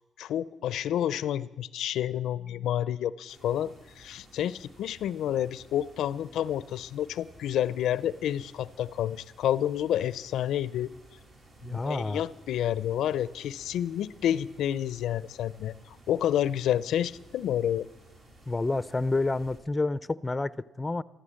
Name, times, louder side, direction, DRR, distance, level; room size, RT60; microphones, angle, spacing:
voice 1, 0.2-10.9 11.6-15.7 16.1-17.9, left 11 dB, 80° left, 0.4 m, -29 dB
sound 1, 3.3-19.6, right 1 dB, 65° right, 4.1 m, -55 dB
voice 2, 11.6-12.2 18.5-21.0, left 2 dB, 20° left, 0.4 m, -29 dB
14.0 x 13.0 x 7.6 m
cardioid pair, 90°, 0 cm